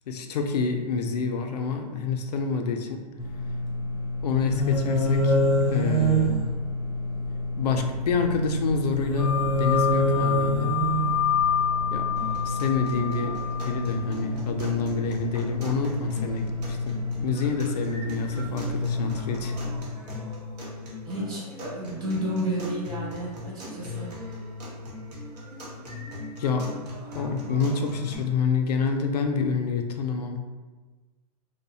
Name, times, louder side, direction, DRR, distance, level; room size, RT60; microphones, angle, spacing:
voice 1, 0.1-3.0 4.2-5.4 5.7-6.4 7.6-10.7 11.9-12.1 12.4-19.6 26.3-26.7 27.1-30.4, left 5 dB, 85° left, 4 dB, 0.4 m, -28 dB
sound 1, 3.2-19.8, left 1 dB, ahead, 0.6 m, -27 dB
sound 2, 9.2-14.0, left 9 dB, 55° right, 0.7 m, -28 dB
sound 3, 12.2-28.2, left 2 dB, 90° right, 0.9 m, -39 dB
voice 2, 21.1-24.1, equal, 25° right, -6 dB, 1.0 m, -31 dB
2.6 x 2.1 x 2.6 m, 1.3 s
hypercardioid pair, 130°, 20 cm